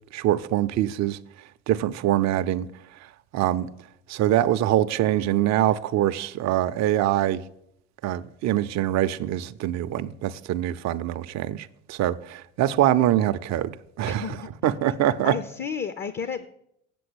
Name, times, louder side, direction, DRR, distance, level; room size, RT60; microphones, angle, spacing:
voice 1, 0.1-1.2 1.7-2.7 3.0-3.7 4.1-7.4 8.0-14.4 14.6-15.4, right 12 dB, 45° right, 0.6 m, -24 dB
voice 2, 14.0-14.7 15.2-16.5, left 6 dB, 30° left, 0.7 m, -32 dB
7.8 x 7.0 x 8.0 m
hypercardioid pair, 75°, 37 cm